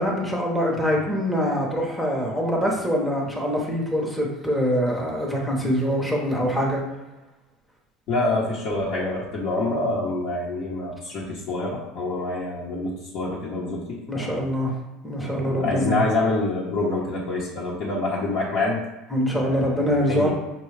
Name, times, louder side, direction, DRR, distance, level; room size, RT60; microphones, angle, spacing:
voice 1, 0.0-6.8 14.1-14.7 15.0-16.0 19.1-20.3, equal, ahead, -2 dB, 0.8 m, -24 dB
voice 2, 8.1-14.5 15.2-18.8 19.4-20.3, left 2 dB, 55° left, -6 dB, 0.9 m, -26 dB
5.7 x 2.3 x 3.2 m, 1.0 s
supercardioid pair, 130°, 0 cm